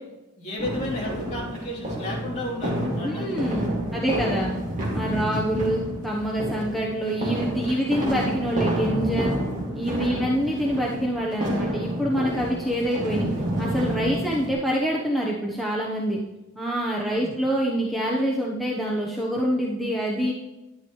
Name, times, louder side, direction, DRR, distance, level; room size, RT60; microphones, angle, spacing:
voice 1, 0.4-3.4 5.1-5.3 10.0-10.2 17.1-17.3, left 1 dB, 35° left, -5 dB, 3.1 m, -33 dB
sound 1, 0.6-14.5, right 1 dB, 35° right, 2.4 m, -29 dB
voice 2, 3.0-4.5 4.9-9.3 9.7-13.3 13.6-16.2 16.6-20.3, equal, ahead, -4 dB, 1.0 m, -26 dB
11.5 x 10.0 x 3.1 m, 1.0 s
head